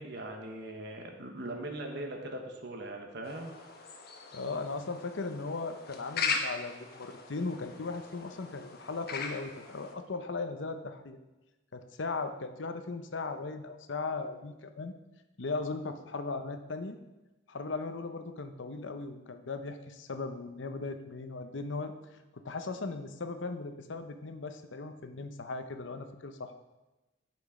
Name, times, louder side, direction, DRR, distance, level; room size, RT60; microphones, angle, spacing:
voice 1, 0.0-3.5, right 1 dB, 65° right, 2 dB, 1.1 m, -40 dB
sound 1, 3.2-9.9, left 5 dB, 55° left, 1.1 m, -39 dB
voice 2, 4.3-11.2 11.7-14.9 15.4-17.0 17.5-21.9 22.3-26.5, left 3 dB, 80° left, 8 dB, 0.8 m, -38 dB
8.7 x 6.1 x 4.9 m, 1.1 s
head